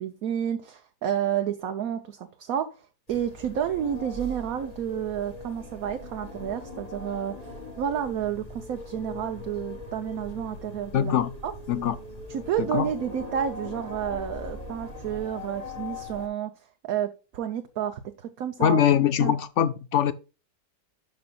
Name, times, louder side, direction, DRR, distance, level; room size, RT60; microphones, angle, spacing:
voice 1, 0.0-11.2 11.4-11.5 12.3-16.5 16.8-18.8 19.2-19.3, right 9 dB, 65° right, 1.2 m, -30 dB
sound 1, 3.1-16.3, left 2 dB, 25° left, 1.7 m, -40 dB
voice 2, 10.9-11.3 11.7-12.0 12.7-12.9 18.6-20.1, left 9 dB, 70° left, 0.7 m, -22 dB
12.0 x 5.5 x 2.3 m
omnidirectional pair, 1.7 m